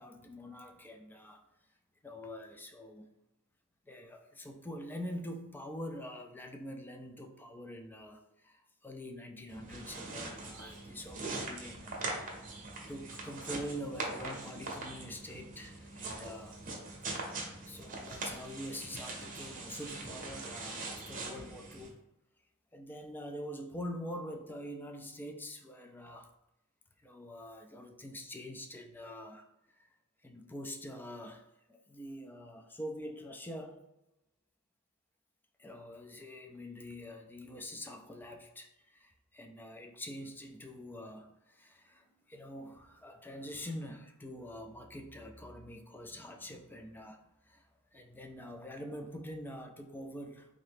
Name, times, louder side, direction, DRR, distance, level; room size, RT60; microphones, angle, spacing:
voice 1, 0.0-1.4 2.0-3.1 3.9-12.0 12.9-16.6 17.7-22.0 22.7-26.3 27.0-29.5 29.8-29.9 30.2-33.8 35.6-50.6, equal, 10° left, 4 dB, 0.3 m, -45 dB
sound 1, 9.5-21.9, right 2 dB, 40° right, 0.7 m, -42 dB
3.7 x 2.6 x 3.4 m, 0.93 s
head